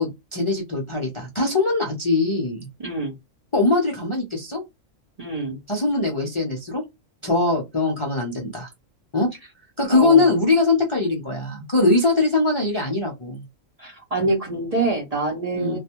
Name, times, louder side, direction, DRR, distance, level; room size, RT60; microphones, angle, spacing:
voice 1, 0.0-2.7 3.5-4.6 5.7-6.8 7.2-8.7 9.1-9.3 9.8-13.4 15.5-15.8, left 3 dB, 35° left, -1 dB, 0.5 m, -21 dB
voice 2, 2.8-3.1 5.2-5.6 9.9-10.3 13.8-15.8, right 2 dB, 40° right, -1 dB, 0.6 m, -25 dB
2.4 x 2.1 x 2.8 m, 0.20 s
omnidirectional pair, 1.3 m